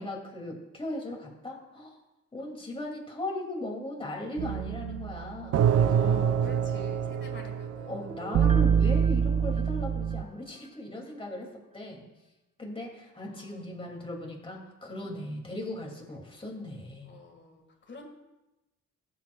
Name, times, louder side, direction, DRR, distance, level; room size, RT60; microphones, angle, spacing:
voice 1, 0.0-2.0 2.3-6.3 7.9-11.5 11.7-12.1 12.6-17.2, left 1 dB, 20° left, -1 dB, 2.6 m, -38 dB
sound 1, 4.4-10.2, right 8 dB, 55° right, 0.5 m, -25 dB
voice 2, 5.6-8.2 13.3-13.7 17.1-18.1, left 3 dB, 40° left, 3 dB, 1.9 m, -48 dB
Piano, 8.1-10.8 11.2-11.3, right 1 dB, 20° right, 0.9 m, -43 dB
15.5 x 7.7 x 2.4 m, 0.99 s
cardioid pair, 90°, 30 cm